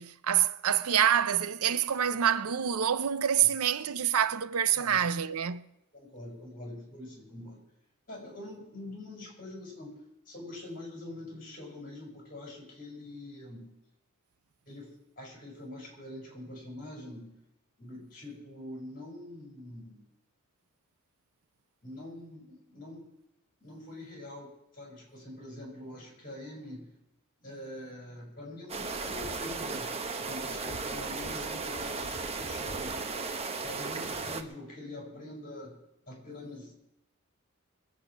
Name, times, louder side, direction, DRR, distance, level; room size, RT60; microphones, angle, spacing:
voice 1, 0.0-5.7, right 9 dB, 80° right, 0.6 m, -27 dB
voice 2, 5.9-7.6 8.1-9.9 10.3-13.7 14.7-17.3 17.8-20.0 21.8-23.1 23.6-26.9 27.4-29.9 30.2-33.0 33.6-35.7 36.1-36.7, left 1 dB, 40° left, 5.9 m, -44 dB
sound 1, 28.7-34.4, right 4 dB, 30° right, 1.0 m, -35 dB
20.5 x 8.5 x 6.1 m
head